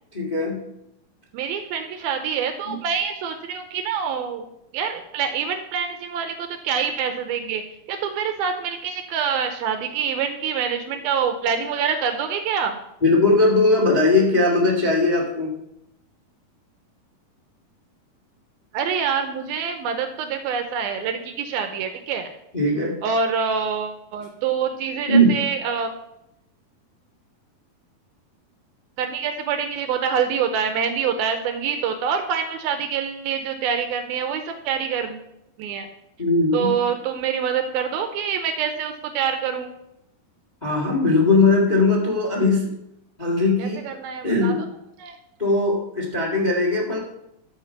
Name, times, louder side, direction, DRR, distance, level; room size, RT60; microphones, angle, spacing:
voice 1, 0.1-0.6 2.6-2.8 13.0-15.5 22.5-23.0 25.1-25.3 36.2-36.8 40.6-42.7 43.2-43.8 44.2-44.6 45.4-47.0, left 2 dB, 40° left, -3 dB, 0.5 m, -19 dB
voice 2, 1.3-4.5 4.7-7.6 7.9-12.8 18.7-22.3 23.0-25.9 29.0-35.3 35.6-35.9 36.5-39.7 43.6-44.5 45.0-45.2, right 7 dB, 80° right, 6 dB, 2.6 m, -26 dB
13.5 x 5.1 x 5.5 m, 0.82 s
omnidirectional pair, 4.3 m